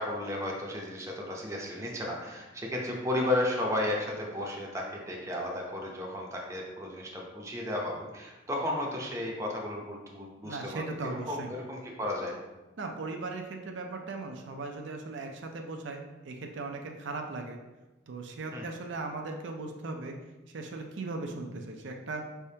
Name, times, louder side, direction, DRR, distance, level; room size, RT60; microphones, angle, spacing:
voice 1, 0.0-12.3 18.5-18.6, left 1 dB, 15° right, -2 dB, 0.6 m, -33 dB
voice 2, 10.4-11.5 12.8-17.6 18.1-20.1 20.5-22.3, right 3 dB, 70° right, 2 dB, 0.5 m, -38 dB
5.2 x 3.4 x 2.7 m, 1.1 s
head